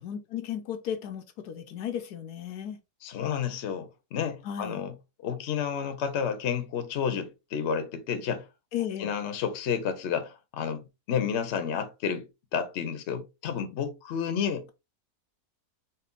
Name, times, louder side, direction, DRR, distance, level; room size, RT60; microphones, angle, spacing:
voice 1, 0.0-2.8 4.4-4.8 8.7-9.1, left 9 dB, 85° left, 1.2 m, -35 dB
voice 2, 3.0-4.9 5.2-8.4 9.0-14.7, left 7 dB, 55° left, 0.9 m, -31 dB
4.1 x 2.3 x 3.8 m
omnidirectional pair, 1.6 m